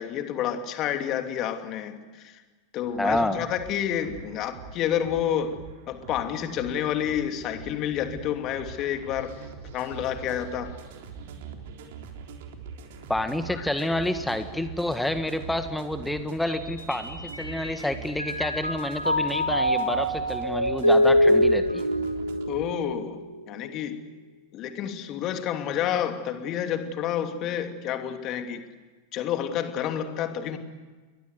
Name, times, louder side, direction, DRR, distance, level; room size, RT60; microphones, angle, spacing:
voice 1, 0.0-2.4 2.7-5.6 5.9-9.3 9.7-10.8 13.6-13.9 22.5-23.2 23.5-24.0 24.5-28.6 29.1-30.6, left 9 dB, 35° left, 6 dB, 2.9 m, -29 dB
sound 1, 2.8-22.7, right 6 dB, 55° right, 3.7 m, -43 dB
voice 2, 3.0-3.4 13.1-21.9, left 1 dB, 5° left, 10 dB, 1.7 m, -28 dB
Mallet percussion, 16.7-17.8 18.2-23.6, left 1 dB, 90° left, 2.4 m, -25 dB
30.0 x 23.0 x 8.1 m, 1.4 s
figure-of-eight pair, 90°, 0 cm